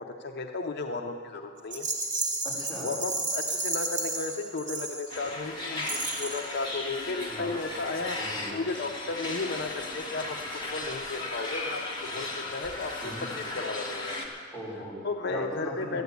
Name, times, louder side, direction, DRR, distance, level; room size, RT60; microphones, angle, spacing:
voice 1, 0.0-1.9 2.8-8.2 8.5-10.4 10.6-12.9 13.2-14.2 15.0-16.0, left 3 dB, 55° left, 4 dB, 0.6 m, -34 dB
Rattle, 1.7-5.3 5.8-6.5, right 2 dB, 40° right, 1.9 m, -32 dB
voice 2, 2.4-2.9 7.3-7.5 8.1-8.6 13.0-13.3 14.5-15.9, equal, 5° left, -8 dB, 4.5 m, -39 dB
sound 1, 5.1-14.3, left 2 dB, 25° left, 1.8 m, -36 dB
12.5 x 9.4 x 8.2 m, 2.2 s
head